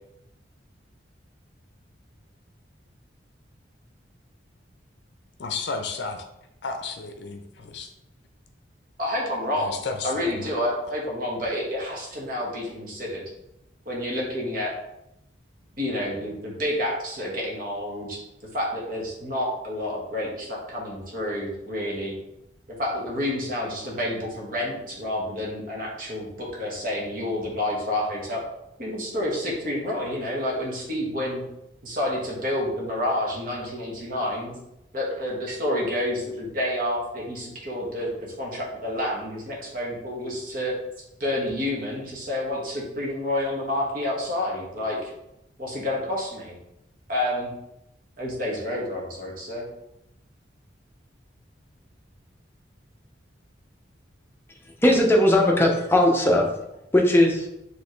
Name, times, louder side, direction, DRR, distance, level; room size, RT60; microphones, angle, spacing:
voice 1, 5.4-6.2 6.6-7.9 9.6-10.5, left 4 dB, 65° left, 5 dB, 0.5 m, -33 dB
voice 2, 9.0-9.7 10.0-13.2 13.8-14.7 15.8-22.1 22.8-28.4 28.8-31.4 31.8-34.5 34.9-40.7 41.2-45.1 45.6-46.6 47.1-47.5 48.2-49.7, left 1 dB, 45° right, -3 dB, 1.3 m, -29 dB
voice 3, 54.8-56.5 56.9-57.5, left 1 dB, 10° left, 0 dB, 0.6 m, -18 dB
5.2 x 3.1 x 3.1 m, 0.86 s
head